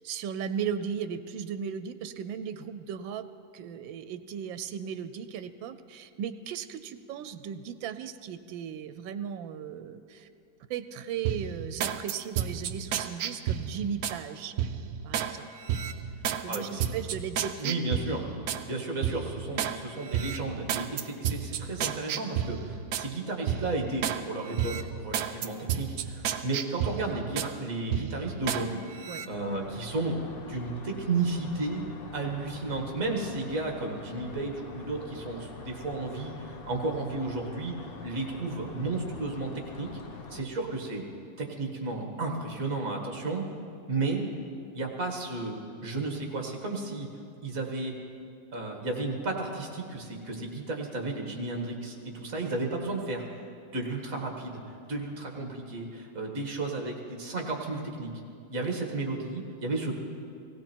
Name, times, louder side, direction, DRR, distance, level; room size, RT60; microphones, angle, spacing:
voice 1, 0.0-3.3 3.5-10.3 10.7-14.6 15.0-15.5 16.2-17.9 29.1-29.2, right 8 dB, 85° right, 11 dB, 1.4 m, -36 dB
sound 1, 11.2-14.2 14.6-15.3 15.7-18.6 19.0-19.8 20.1-23.1 23.5-24.2 24.6-27.5 27.9-28.6 29.0-29.3, right 9 dB, 70° right, 0.9 m, -32 dB
voice 2, 16.5-16.9 17.6-18.2 18.6-30.2 30.5-31.9 32.1-39.5 39.8-39.9 40.3-41.0 41.4-43.4 43.9-44.2 44.7-45.5 45.8-47.1 47.4-47.9 48.5-53.2 53.7-58.1 58.5-60.0, right 3 dB, 45° right, 1 dB, 2.1 m, -33 dB
sound 2, 29.3-40.4, left 3 dB, 50° left, 0.7 m, -45 dB
17.0 x 17.0 x 4.5 m, 2.4 s
omnidirectional pair, 2.1 m